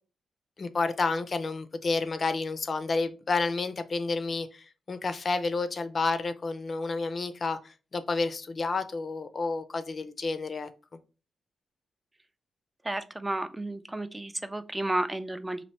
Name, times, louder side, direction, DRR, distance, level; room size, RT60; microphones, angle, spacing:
voice 1, 0.6-10.7, left 3 dB, 45° left, 0.5 m, -30 dB
voice 2, 12.9-15.6, right 1 dB, 15° right, 0.4 m, -32 dB
3.0 x 2.6 x 4.2 m
cardioid pair, 85°, 0 cm